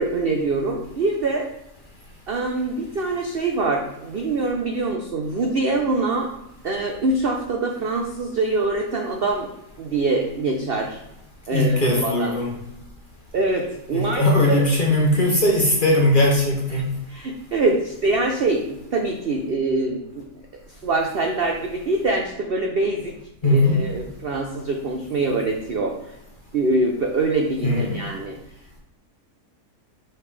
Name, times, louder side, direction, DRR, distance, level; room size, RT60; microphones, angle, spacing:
voice 1, 0.0-1.5 2.3-6.3 6.6-9.5 9.8-11.0 11.5-12.3 13.3-14.2 14.5-14.7 16.7-16.8 17.1-20.3 20.8-23.1 23.4-25.9 26.5-28.4, right 3 dB, 70° right, 2 dB, 0.5 m, -24 dB
voice 2, 11.5-12.6 13.9-16.9 23.4-23.8 27.6-28.0, left 1 dB, 40° left, -1 dB, 0.8 m, -19 dB
5.6 x 5.1 x 3.3 m, 0.87 s
omnidirectional pair, 1.7 m